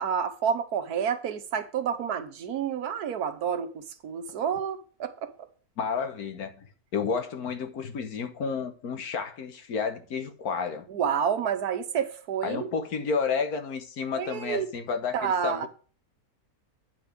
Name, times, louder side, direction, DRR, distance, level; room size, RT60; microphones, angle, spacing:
voice 1, 0.0-5.3 10.9-12.7 14.1-14.7 15.1-15.7, right 7 dB, 80° right, 1.5 m, -29 dB
voice 2, 5.8-6.7 6.9-10.9 12.4-15.7, left 5 dB, 75° left, 1.7 m, -31 dB
9.3 x 5.3 x 6.1 m
omnidirectional pair, 1.6 m